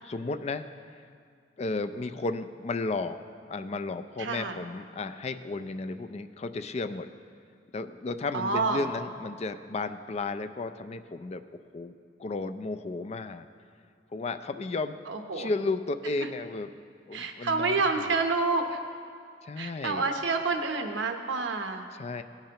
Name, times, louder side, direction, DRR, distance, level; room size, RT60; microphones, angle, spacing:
voice 1, 0.0-0.6 1.6-3.2 3.5-7.1 7.7-11.4 11.7-11.9 12.2-13.5 14.1-15.0 15.3-16.7 17.1-18.1 19.4-20.1 21.9-22.2, left 3 dB, 35° left, 9 dB, 0.4 m, -33 dB
voice 2, 4.2-4.6 8.3-8.8 15.1-15.5 17.1-18.8 19.6-21.8, right 3 dB, 80° right, 5 dB, 0.9 m, -28 dB
17.0 x 8.7 x 2.9 m, 2.2 s
head